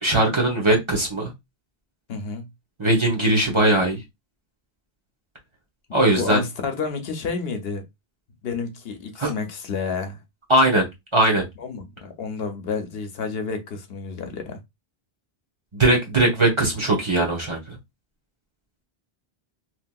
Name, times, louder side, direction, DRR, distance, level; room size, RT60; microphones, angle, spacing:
voice 1, 0.0-1.3 2.8-4.0 5.9-6.4 9.2-9.3 10.5-10.9 11.1-11.4 15.7-17.8, right 1 dB, 30° right, 0.8 m, -20 dB
voice 2, 2.1-2.5 6.2-7.8 8.4-10.2 11.6-14.6, left 5 dB, 75° left, 0.9 m, -30 dB
3.1 x 2.6 x 2.2 m
omnidirectional pair, 1.1 m